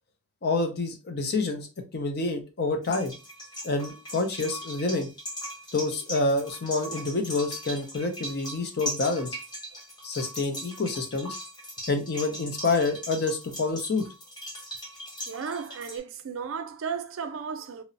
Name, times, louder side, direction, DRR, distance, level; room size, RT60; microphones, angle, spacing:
voice 1, 0.4-1.7 1.9-3.1 3.6-5.1 5.7-9.3 10.0-11.3 11.9-14.0, left 3 dB, 50° left, 0.5 m, -28 dB
sound 1, 2.8-16.0, equal, 20° left, 0.9 m, -39 dB
voice 2, 15.3-17.8, right 6 dB, 70° right, 0.4 m, -34 dB
2.9 x 2.0 x 2.6 m
head